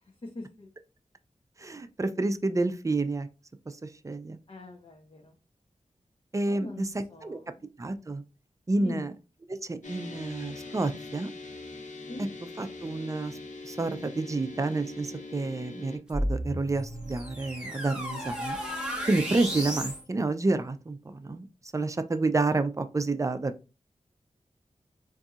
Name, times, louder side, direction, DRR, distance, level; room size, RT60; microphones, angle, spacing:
voice 1, 0.3-0.7 4.5-5.3 6.5-7.4 8.8-9.1 12.1-12.3, left 2 dB, 45° left, 0 dB, 0.8 m, -42 dB
voice 2, 1.6-3.3 4.0-4.4 6.3-7.4 7.8-8.2 8.7-9.1 9.5-11.3 12.6-13.4 13.6-18.6 19.1-21.5 21.7-23.5, right 2 dB, 25° right, 10 dB, 0.4 m, -29 dB
sound 1, 9.8-16.0, left 3 dB, 80° left, 0.7 m, -42 dB
sound 2, 16.1-20.0, equal, 5° right, 1.8 m, -33 dB
3.9 x 2.7 x 2.4 m, 0.31 s
wide cardioid pair, 55°, 13 cm